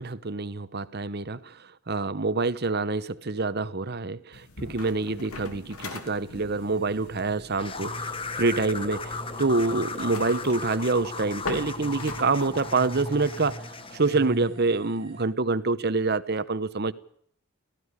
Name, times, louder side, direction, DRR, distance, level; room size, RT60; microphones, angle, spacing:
voice 1, 0.0-9.1 9.4-13.6 13.9-16.9, right 3 dB, 45° right, 0.9 m, -26 dB
sound 1, 4.3-13.5, left 3 dB, 90° left, 3.1 m, -42 dB
sound 2, 4.6-15.3, right 1 dB, 25° right, 3.7 m, -43 dB
sound 3, 7.6-14.2, left 4 dB, 25° left, 1.1 m, -37 dB
18.0 x 15.5 x 9.7 m
head